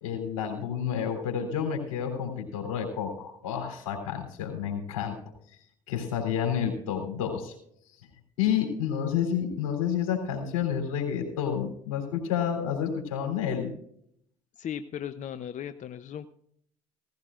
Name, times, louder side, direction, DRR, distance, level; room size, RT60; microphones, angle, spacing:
voice 1, 0.0-5.2 5.9-7.5 8.4-13.7, left 8 dB, 85° left, 3 dB, 3.5 m, -30 dB
voice 2, 14.6-16.3, left 9 dB, 45° left, 11 dB, 0.7 m, -37 dB
17.0 x 16.0 x 2.5 m, 0.68 s
hypercardioid pair, 65°, 17 cm